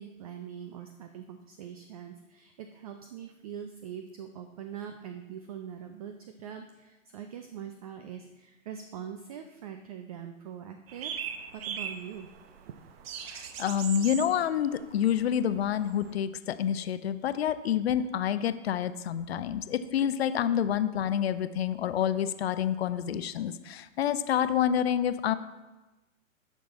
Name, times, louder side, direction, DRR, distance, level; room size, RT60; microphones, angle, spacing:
voice 1, 0.0-11.1 11.5-12.3 12.6-12.7, right 8 dB, 30° right, 7 dB, 0.4 m, -43 dB
sound 1, 10.9-16.1, right 7 dB, 45° right, 0.9 m, -40 dB
voice 2, 13.3-25.3, left 9 dB, 50° left, 13 dB, 0.6 m, -28 dB
10.5 x 6.1 x 4.1 m, 1.1 s
figure-of-eight pair, 115°, 40 cm